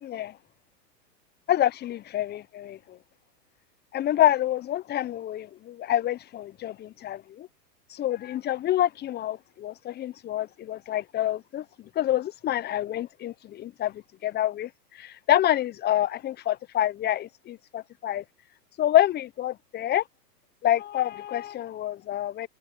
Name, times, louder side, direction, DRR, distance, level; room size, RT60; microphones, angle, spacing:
voice 1, 0.0-0.4 1.5-3.0 3.9-7.5 7.9-11.6 11.9-14.7 15.0-18.2 18.8-20.0 20.6-22.5, left 12 dB, 20° left, 0.9 m, -27 dB
hypercardioid pair, 110°, 50 cm